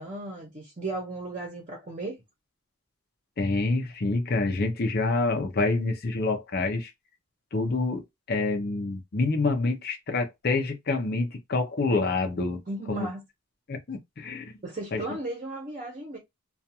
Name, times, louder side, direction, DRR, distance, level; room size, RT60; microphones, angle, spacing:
voice 1, 0.0-2.2 12.7-13.2 14.6-16.2, right 2 dB, 35° right, 0.7 m, -35 dB
voice 2, 3.4-6.9 7.5-12.6 12.9-13.1 13.7-14.5 14.9-15.0, left 3 dB, 45° left, 0.5 m, -27 dB
2.4 x 2.3 x 2.7 m
head